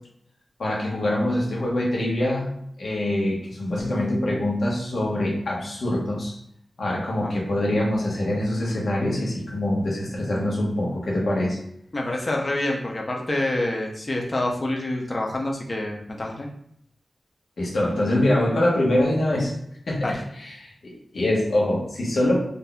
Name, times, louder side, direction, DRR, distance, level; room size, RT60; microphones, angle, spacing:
voice 1, 0.6-2.5 2.8-6.4 6.8-11.6 17.6-19.5 19.9-20.1 20.4-22.4, left 1 dB, 85° left, -3 dB, 1.1 m, -24 dB
voice 2, 11.9-16.5 20.0-20.2, left 1 dB, 40° left, 0 dB, 0.7 m, -27 dB
3.9 x 2.7 x 2.3 m, 0.72 s
wide cardioid pair, 90°, 0 cm